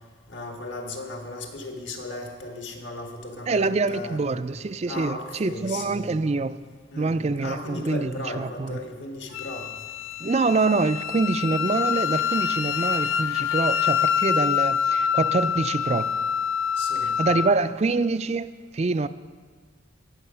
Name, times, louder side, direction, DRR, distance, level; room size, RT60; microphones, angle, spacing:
voice 1, 0.3-4.4 4.9-6.2 6.9-9.7 16.8-17.2, left 2 dB, 65° left, 1.8 m, -36 dB
voice 2, 3.5-6.6 7.0-8.8 10.2-16.1 17.2-19.1, right 3 dB, 30° right, 0.3 m, -25 dB
Wind instrument woodwind instrument, 9.3-17.5, left 8 dB, 80° left, 0.5 m, -26 dB
19.0 x 7.7 x 5.7 m
head